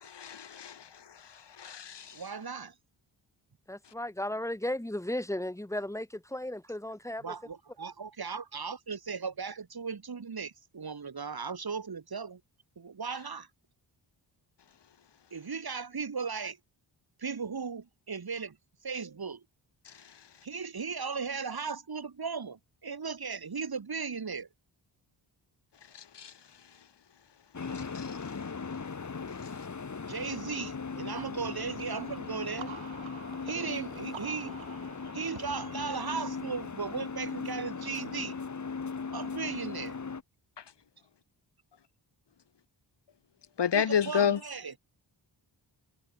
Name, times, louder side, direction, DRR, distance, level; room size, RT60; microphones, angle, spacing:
voice 1, 0.0-0.8 1.6-2.1 26.2-26.3 27.9-28.1 43.6-44.4, left 8 dB, 65° left, 1.7 m, -29 dB
voice 2, 2.1-2.7 7.2-12.4 12.8-13.5 15.3-16.6 17.2-18.6 18.8-19.4 20.4-24.5 30.1-32.7 33.4-34.5 35.1-38.4 39.1-40.0 43.7-44.8, right 5 dB, 55° right, 6.8 m, -37 dB
voice 3, 3.7-7.3, left 1 dB, 5° left, 1.9 m, -35 dB
sound 1, 27.5-40.2, left 5 dB, 40° left, 2.2 m, -38 dB
sound 2, 31.8-37.3, right 8 dB, 90° right, 3.6 m, -49 dB
wide cardioid pair, 110°, 45 cm